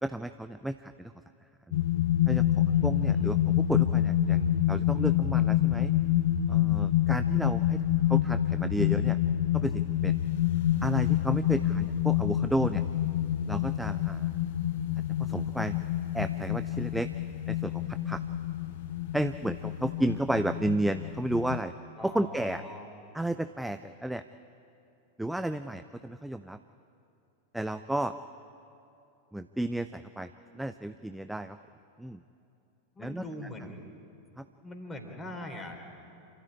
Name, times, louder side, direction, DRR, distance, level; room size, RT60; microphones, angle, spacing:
voice 1, 0.0-1.1 2.3-5.9 6.5-7.8 8.1-9.2 9.5-10.2 10.8-12.8 13.5-14.3 15.2-15.8 16.1-17.1 17.5-18.2 19.1-21.7 22.0-22.6 23.1-24.2 25.2-26.6 27.5-28.1 29.3-31.6 32.0-32.2 33.0-33.2 34.4-34.5, right 1 dB, 5° right, 10 dB, 0.5 m, -32 dB
sound 1, 1.7-21.6, left 12 dB, 55° left, 0.8 m, -27 dB
voice 2, 2.7-3.4 22.0-22.9 32.9-33.9 34.6-35.9, left 1 dB, 15° left, 4 dB, 3.3 m, -42 dB
28.0 x 13.0 x 9.9 m, 2.7 s
figure-of-eight pair, 90°, 0 cm